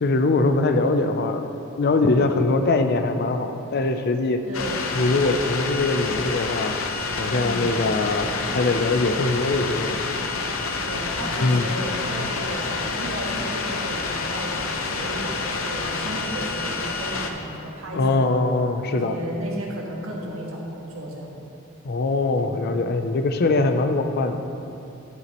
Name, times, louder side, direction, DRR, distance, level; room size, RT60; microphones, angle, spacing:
voice 1, 0.0-1.5 1.7-4.4 4.9-6.8 7.2-10.0 11.3-11.7 17.9-19.1 21.8-24.4, left 3 dB, 50° left, 7 dB, 0.5 m, -22 dB
voice 2, 2.0-2.4 4.4-4.9 7.3-7.7 10.7-14.5 14.8-18.4 18.9-21.4 23.5-23.7, right 1 dB, 85° right, -2 dB, 1.5 m, -34 dB
sound 1, 4.5-17.3, left 4 dB, 85° left, 0.7 m, -28 dB
11.5 x 7.8 x 3.0 m, 2.8 s
head